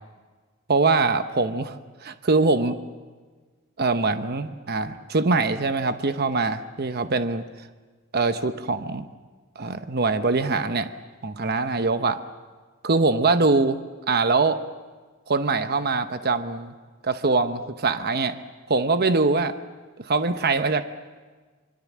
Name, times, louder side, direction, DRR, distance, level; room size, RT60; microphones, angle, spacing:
voice 1, 0.7-1.8 2.0-2.7 3.8-7.4 8.1-9.1 9.6-10.9 11.2-12.2 12.8-13.8 14.1-14.6 15.3-16.7 17.0-18.4 18.7-19.5 20.0-20.8, right 3 dB, 50° right, 9 dB, 0.9 m, -23 dB
26.0 x 24.5 x 7.4 m, 1.4 s
head